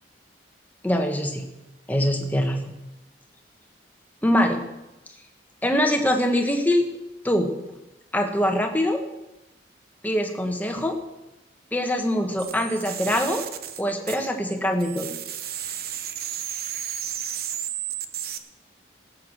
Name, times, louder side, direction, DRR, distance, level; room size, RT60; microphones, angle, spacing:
voice 1, 0.8-1.5 1.9-2.7 4.2-4.6 5.6-6.9 7.2-7.5 8.1-9.0 10.0-11.0 11.7-13.4 13.8-15.1, equal, 10° left, 4 dB, 1.5 m, -23 dB
sound 1, 12.4-14.5 14.8-18.4, right 10 dB, 50° right, 0.9 m, -33 dB
17.5 x 8.4 x 6.2 m, 0.97 s
head